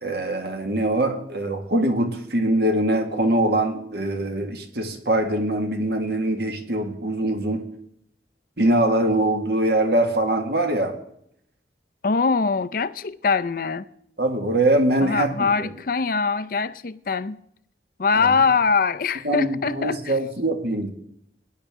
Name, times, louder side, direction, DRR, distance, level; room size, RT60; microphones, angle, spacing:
voice 1, 0.0-7.7 8.6-11.0 14.2-15.7 18.1-18.3 19.2-20.9, right 1 dB, 60° right, 1.8 m, -23 dB
voice 2, 12.0-13.8 15.0-17.4 18.0-20.1, left 5 dB, 50° left, 0.5 m, -23 dB
18.5 x 10.5 x 3.6 m
head